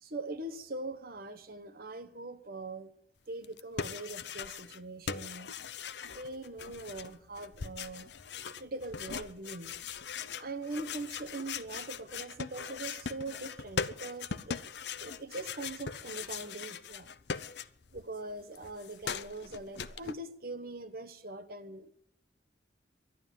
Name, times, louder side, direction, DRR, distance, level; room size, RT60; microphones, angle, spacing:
voice 1, 0.0-2.9 3.3-5.5 6.0-8.1 8.6-9.7 10.4-14.6 15.0-17.1 17.9-21.9, right 2 dB, 55° right, 10 dB, 1.3 m, -42 dB
sound 1, 3.4-4.8 5.1-18.0 18.3-20.1, left 6 dB, 75° left, 0.7 m, -40 dB
12.0 x 11.0 x 9.3 m, 0.70 s
head